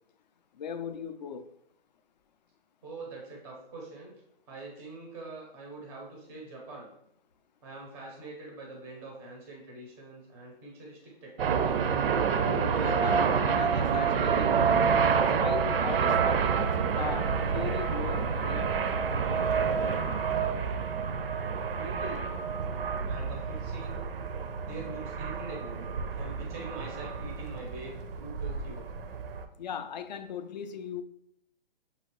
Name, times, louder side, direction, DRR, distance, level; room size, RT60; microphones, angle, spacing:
voice 1, 0.6-1.5 12.4-14.6 15.0-18.8 29.6-31.0, left 7 dB, 50° left, 0.4 m, -39 dB
voice 2, 2.8-4.1 4.5-6.9 7.6-11.8 21.7-22.3 23.0-24.0 24.6-25.9 26.1-28.8, right 2 dB, 10° right, 0.5 m, -44 dB
sound 1, 11.4-29.4, right 6 dB, 75° right, 0.6 m, -28 dB
6.1 x 2.8 x 3.0 m
hypercardioid pair, 160°, 29 cm